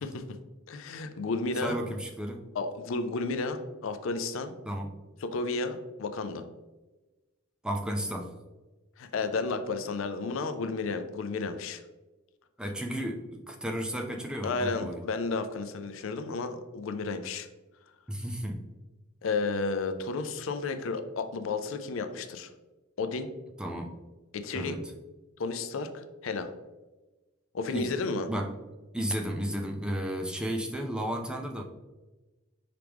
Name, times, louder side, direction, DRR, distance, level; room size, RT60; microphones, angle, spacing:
voice 1, 0.0-0.4 0.7-1.8 2.6-4.6 5.2-6.4 9.0-11.8 14.4-17.5 19.2-22.5 23.0-23.3 24.3-24.8 25.4-26.5 27.5-28.3, left 3 dB, 65° left, 9 dB, 0.4 m, -32 dB
voice 2, 1.6-2.4 4.7-4.9 7.6-8.3 12.6-15.0 18.1-18.6 23.6-23.9 24.5-24.8 27.7-27.9 28.3-28.5 28.9-31.6, equal, 5° right, 2 dB, 0.4 m, -33 dB
4.9 x 3.5 x 3.0 m, 1.1 s
head